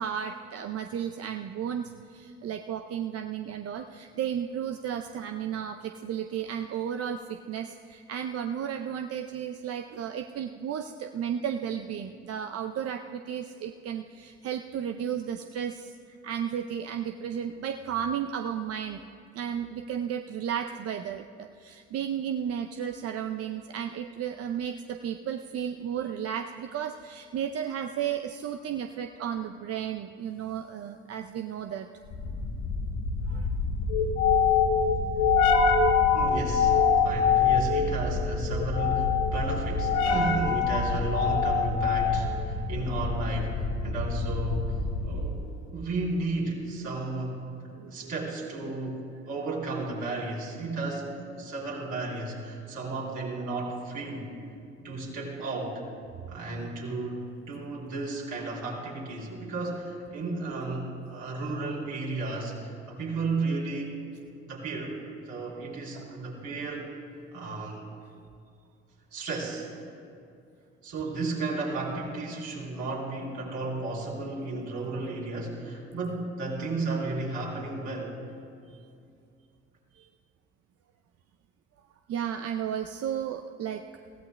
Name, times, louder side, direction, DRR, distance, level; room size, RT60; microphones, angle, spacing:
voice 1, 0.0-19.0 19.3-31.9 33.3-33.5 45.1-45.2 47.7-48.1 65.9-66.1 78.7-78.8 79.9-80.1 82.1-83.8, right 9 dB, 50° right, 6 dB, 0.6 m, -34 dB
sound 1, 32.1-45.4, left 5 dB, 60° left, 1.1 m, -25 dB
voice 2, 36.1-45.4 45.7-47.4 47.9-54.3 54.8-55.8 56.3-63.9 64.2-65.0 65.2-66.9 67.3-67.9 69.1-69.7 70.8-78.2, right 2 dB, 65° right, -4 dB, 3.6 m, -33 dB
22.0 x 16.0 x 2.2 m, 2.5 s
hypercardioid pair, 50°, 32 cm